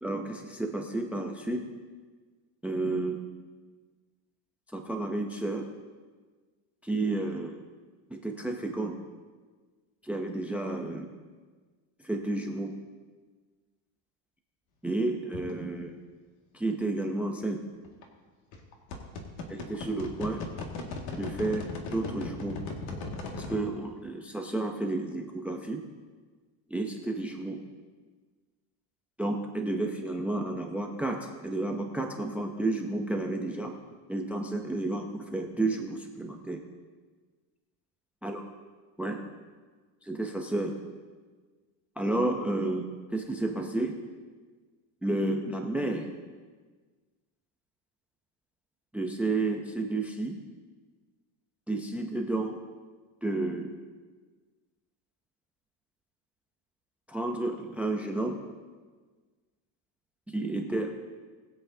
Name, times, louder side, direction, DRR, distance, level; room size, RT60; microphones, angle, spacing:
voice 1, 0.0-1.6 2.6-3.2 4.7-5.7 6.8-7.6 8.1-9.0 10.0-11.1 12.0-12.7 14.8-15.9 16.5-17.6 19.5-20.4 21.2-22.6 23.4-25.9 26.7-27.6 29.2-33.7 34.1-36.6 38.2-38.4 39.0-39.2 40.0-40.7 42.0-42.8 43.1-44.0 45.0-46.1 48.9-50.4 51.7-52.6 53.2-53.8 57.1-58.4 60.3-60.9, right 2 dB, 5° right, 3 dB, 0.4 m, -31 dB
sound 1, 15.3-15.5 17.8-18.0 18.5-23.6, left 3 dB, 60° left, 1.9 m, -37 dB
21.0 x 8.0 x 2.7 m, 1.4 s
cardioid pair, 155°, 45 cm